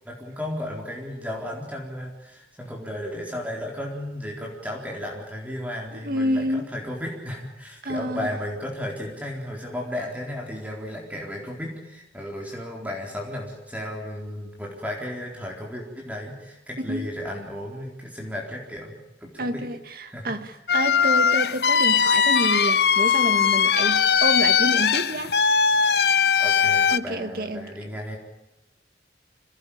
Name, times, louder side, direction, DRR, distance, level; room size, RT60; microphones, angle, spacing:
voice 1, 0.0-19.7 20.1-20.3 26.4-28.2, left 1 dB, 10° right, 4.2 m, -34 dB
voice 2, 5.9-6.7 7.8-8.3 16.8-17.1 19.4-25.4 26.9-27.7, equal, 55° right, 2.0 m, -28 dB
sound 1, 20.7-27.0, left 6 dB, 60° left, 0.9 m, -20 dB
26.5 x 18.0 x 8.8 m
head